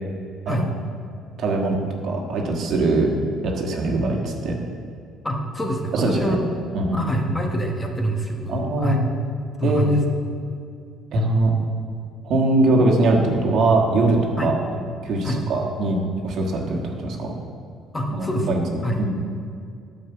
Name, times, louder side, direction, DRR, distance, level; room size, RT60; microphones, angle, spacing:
voice 1, 1.4-3.1 3.4-4.5 5.9-6.4 6.7-7.0 8.5-9.0 9.6-10.1 11.1-11.5 12.2-14.6 15.0-17.3 18.1-18.6 19.0-19.1, right 2 dB, 60° right, 0 dB, 1.5 m, -21 dB
voice 2, 5.2-6.6 6.9-9.0 9.6-10.0 14.4-14.5 15.2-15.4 17.9-18.6 18.8-19.0, right 1 dB, 15° left, 1 dB, 1.1 m, -26 dB
9.7 x 4.8 x 6.9 m, 2.4 s
cardioid pair, 115°, 0 cm